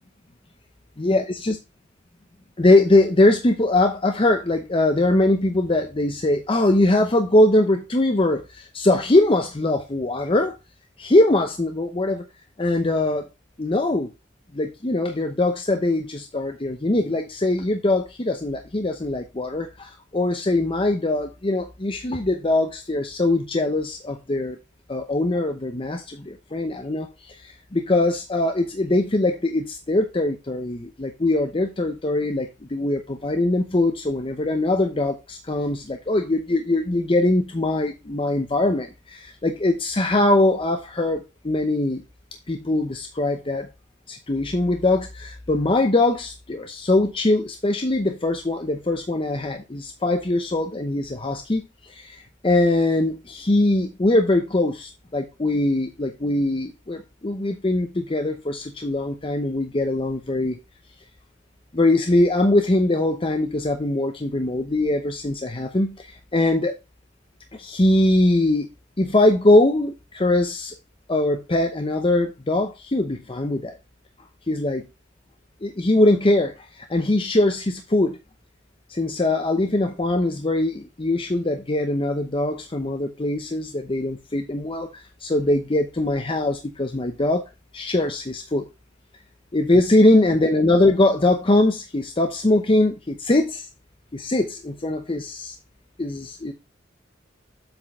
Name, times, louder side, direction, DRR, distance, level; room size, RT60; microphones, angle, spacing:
voice 1, 1.0-1.6 2.6-10.6 11.0-12.2 12.6-13.3 13.6-14.1 14.5-24.6 24.9-42.0 42.5-43.7 44.1-60.6 61.7-66.7 67.6-68.7 69.0-70.8 71.1-73.8 74.5-74.9 75.6-78.2 78.9-87.4 87.7-88.6 89.5-93.7 94.1-95.5 96.0-96.5, left 2 dB, 30° left, 0.8 m, -22 dB
7.9 x 4.5 x 4.3 m
head